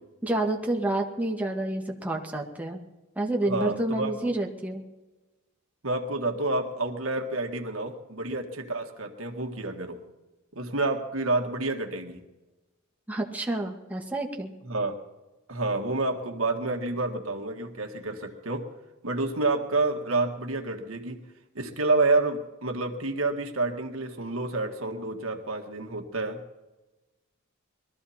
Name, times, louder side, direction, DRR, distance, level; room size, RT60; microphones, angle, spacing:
voice 1, 0.2-2.8 3.1-4.8 13.1-14.5, right 1 dB, 5° right, 1 dB, 1.7 m, -29 dB
voice 2, 3.5-4.4 5.8-10.0 10.5-12.2 14.7-15.0 15.5-18.7 19.0-21.2 21.6-26.4, right 2 dB, 75° right, 3 dB, 1.9 m, -29 dB
22.0 x 14.0 x 4.3 m, 1.1 s
head